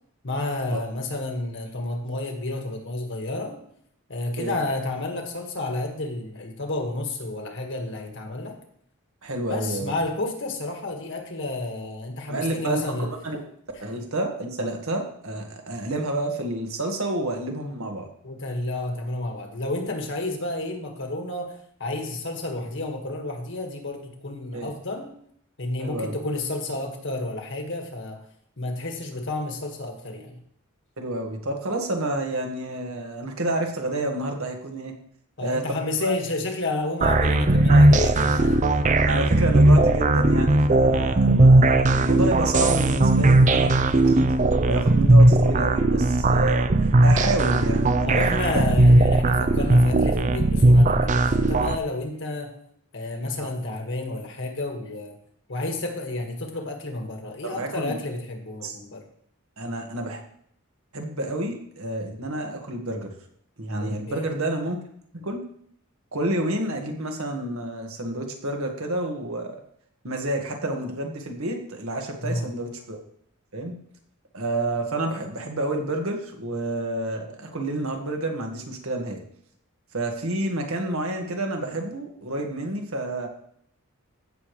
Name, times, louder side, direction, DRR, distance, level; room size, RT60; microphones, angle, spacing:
voice 1, 0.2-3.6 4.1-8.6 9.5-13.1 13.7-13.8 18.2-25.1 25.6-28.2 28.6-30.4 35.4-38.6 48.1-52.6 52.9-55.2 55.5-59.1 63.8-64.3 72.2-72.5, left 2 dB, 60° left, 3 dB, 1.8 m, -31 dB
voice 2, 9.2-9.9 12.3-12.9 13.2-13.4 13.8-18.1 24.5-24.7 25.8-26.2 31.0-34.9 35.4-36.1 37.7-37.9 38.4-38.5 39.0-44.3 44.6-48.6 53.4-53.5 57.4-58.0 58.6-58.8 59.6-60.2 60.9-63.1 63.6-64.8 65.1-65.4 66.1-69.6 70.0-73.0 73.5-73.7 74.3-79.2 79.9-83.3, right 1 dB, 75° right, 2 dB, 1.8 m, -29 dB
sound 1, 37.0-51.8, right 2 dB, 35° right, 0.5 m, -18 dB
16.0 x 6.9 x 3.3 m, 0.67 s
head